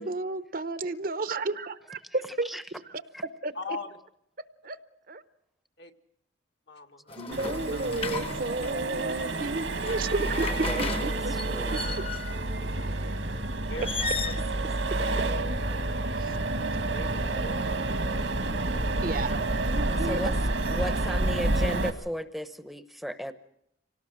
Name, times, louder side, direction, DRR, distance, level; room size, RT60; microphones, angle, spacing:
voice 1, 0.0-2.5 2.8-3.0 3.4-3.8 4.6-4.8 5.1-5.2 7.2-11.8 16.1-16.4 19.0-20.4, right 3 dB, 50° right, 12 dB, 0.8 m, -32 dB
voice 2, 3.6-3.9 5.8-5.9 6.7-8.4 13.7-13.9 14.2-14.4 15.0-15.1 16.9-17.5 19.8-20.3, left 3 dB, 65° left, 4 dB, 1.7 m, -40 dB
sound 1, 7.1-8.8 9.6-12.5 13.7-14.4, left 4 dB, 30° left, 1.0 m, -35 dB
Accelerating revving vroom, 7.3-21.9, right 2 dB, 80° right, 1.8 m, -29 dB
voice 3, 10.7-11.1 11.5-11.9 20.1-20.3 20.7-23.3, equal, ahead, 10 dB, 0.8 m, -35 dB
25.5 x 18.0 x 6.4 m, 0.76 s
head